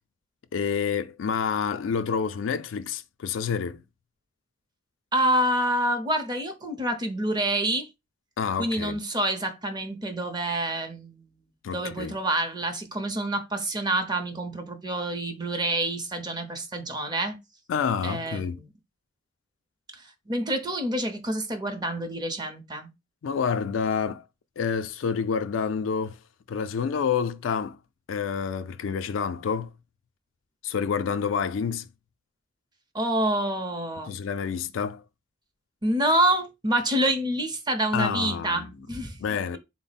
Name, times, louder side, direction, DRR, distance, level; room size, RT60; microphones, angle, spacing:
voice 1, 0.5-3.8 8.4-9.0 11.6-12.1 17.7-18.6 23.2-24.2 24.6-26.2 26.5-27.8 28.1-29.7 30.6-31.9 34.1-35.0 37.9-38.7 39.2-39.6, left 6 dB, 90° left, 0.4 m, -28 dB
voice 2, 5.1-7.9 8.6-11.3 11.7-17.4 18.0-18.6 19.9-22.9 32.9-34.2 35.8-39.2, right 1 dB, 20° right, 0.7 m, -27 dB
3.9 x 2.0 x 4.0 m
head